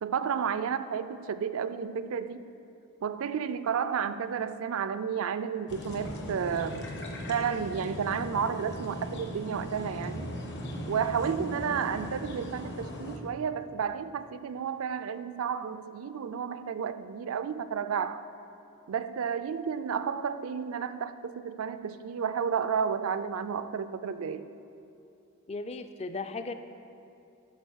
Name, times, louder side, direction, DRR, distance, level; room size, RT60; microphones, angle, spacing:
voice 1, 0.0-2.5 3.0-6.9 7.3-10.3 10.9-18.2 18.9-24.5, right 7 dB, 70° right, 12 dB, 0.4 m, -32 dB
sound 1, 5.7-13.2, equal, 55° left, 1.0 m, -39 dB
voice 2, 25.5-26.5, left 3 dB, 30° left, 8 dB, 0.4 m, -36 dB
11.0 x 4.6 x 6.3 m, 2.7 s
head